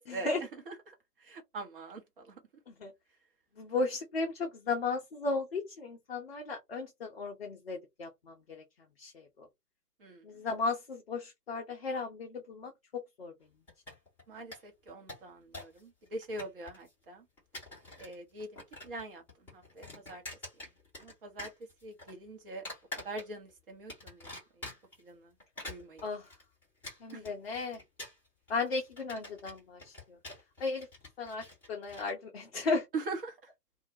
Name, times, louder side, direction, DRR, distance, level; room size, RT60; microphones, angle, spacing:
voice 1, 0.0-2.4 10.0-10.4 14.3-17.3 18.0-19.2 19.5-20.2 20.6-20.7 21.0-21.5 21.8-22.6 23.0-24.7 25.0-25.3 25.6-26.1 27.1-27.2 32.9-33.5, right 2 dB, 35° right, 0.8 m, -43 dB
voice 2, 3.6-8.6 9.0-9.5 10.2-13.3 26.0-26.2 27.0-27.8 28.5-30.2 30.6-30.9 31.2-32.9, left 3 dB, 40° left, 0.5 m, -35 dB
sound 1, 13.7-14.2 14.5-14.6 14.9-15.8 16.1-16.9 17.4-18.1 18.4-19.0 19.3-21.1 21.4-22.1 22.7-23.5 23.9-25.0 25.4-32.1, left 1 dB, 5° left, 0.8 m, -46 dB
2.3 x 2.1 x 2.6 m
figure-of-eight pair, 125°, 47 cm